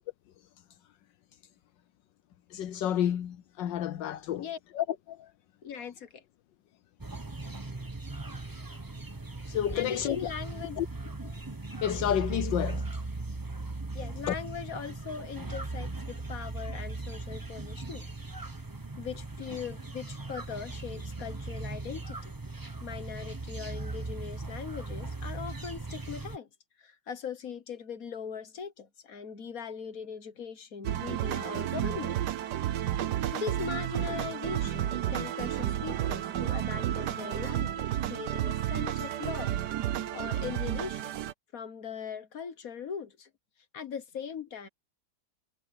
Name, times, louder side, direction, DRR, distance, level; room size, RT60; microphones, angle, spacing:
voice 1, 2.5-4.5 4.7-5.3 9.5-10.2 10.8-10.9 11.2-11.3 11.8-12.9 14.3-14.4, left 10 dB, 70° left, 1.3 m, -30 dB
voice 2, 5.6-6.2 9.7-10.8 13.9-18.1 19.0-22.3 22.8-26.5 26.8-32.2 33.3-39.6 40.1-41.1 41.5-43.3 43.7-44.7, left 7 dB, 50° left, 1.5 m, -40 dB
sound 1, 7.0-26.4, right 3 dB, 15° right, 0.8 m, -38 dB
sound 2, 30.8-41.3, right 11 dB, 60° right, 1.3 m, -31 dB
omnidirectional pair, 2.2 m